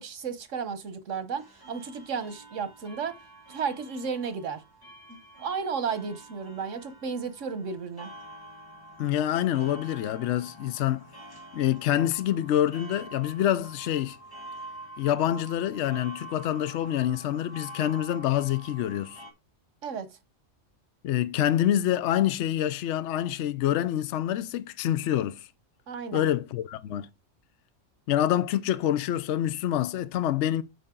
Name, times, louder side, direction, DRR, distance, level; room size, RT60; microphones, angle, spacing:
voice 1, 0.0-3.1 3.5-4.6 5.1-8.1 19.8-20.1 25.9-26.3, right 6 dB, 85° right, 1.4 m, -33 dB
sound 1, 1.4-19.3, right 1 dB, 20° left, 1.9 m, -47 dB
voice 2, 9.0-11.0 11.5-14.2 15.0-19.2 21.0-25.5 26.1-27.1 28.1-30.6, left 11 dB, 70° left, 0.9 m, -26 dB
8.5 x 5.2 x 3.7 m
omnidirectional pair, 1.3 m